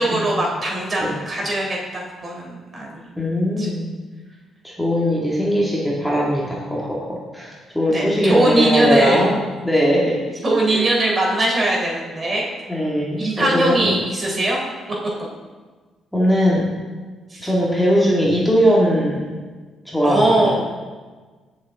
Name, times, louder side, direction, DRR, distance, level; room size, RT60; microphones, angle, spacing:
voice 1, 0.0-3.1 3.6-3.7 7.9-9.2 10.4-12.5 13.2-14.6 15.2-15.3 17.3-17.5 20.0-20.7, right 1 dB, 35° right, -2 dB, 3.7 m, -21 dB
voice 2, 3.2-3.8 4.6-9.4 9.6-10.4 10.7-10.9 12.7-14.0 16.1-16.7 17.4-19.3 19.9-20.5, equal, 5° left, -5 dB, 2.1 m, -20 dB
17.0 x 7.2 x 3.7 m, 1.4 s
cardioid pair, 90°, 0 cm